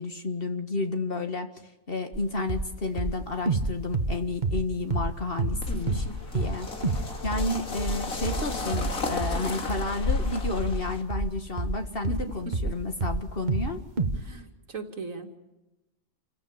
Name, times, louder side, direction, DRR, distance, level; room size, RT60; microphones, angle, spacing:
voice 1, 0.0-1.5 1.9-6.0 6.3-6.9 7.2-13.8, left 2 dB, 45° left, 6 dB, 2.0 m, -31 dB
sound 1, 2.1-2.2 2.5-2.7 3.0-5.1 5.4-5.6 5.9-6.1 6.3-6.6 6.8-7.1 7.3-12.8 13.0-13.7 14.0-14.2, right 3 dB, 35° right, 1.5 m, -28 dB
sound 2, 5.4-9.6, left 4 dB, 10° right, 1.8 m, -47 dB
sound 3, 5.6-11.0, left 4 dB, 90° left, 2.5 m, -32 dB
voice 2, 5.7-6.2 7.0-7.1 12.1-12.7 14.1-15.4, right 3 dB, 75° right, 5 dB, 2.7 m, -39 dB
29.0 x 15.5 x 8.9 m, 1.0 s
omnidirectional pair, 1.4 m